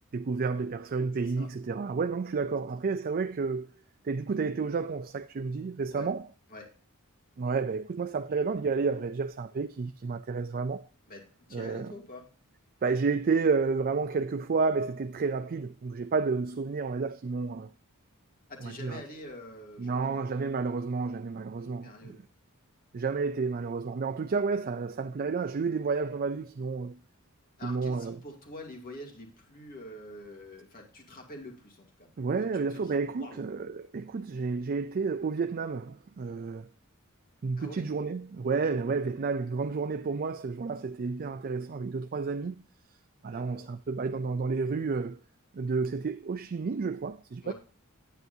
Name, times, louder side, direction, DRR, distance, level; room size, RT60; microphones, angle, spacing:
voice 1, 0.1-3.7 4.0-6.2 7.4-10.9 11.5-11.9 12.8-17.7 18.6-19.0 19.8-22.2 22.9-27.0 27.6-28.2 32.2-36.7 37.4-42.6 43.2-45.2 45.5-47.5, right 4 dB, 40° right, 0.4 m, -31 dB
voice 2, 1.1-1.5 5.9-6.1 6.5-6.7 11.1-12.2 18.5-20.3 21.6-22.2 27.6-32.1 32.4-33.4 37.6-37.9 43.3-43.7 47.4-47.5, left 1 dB, 40° left, 2.5 m, -46 dB
9.5 x 9.2 x 2.7 m
head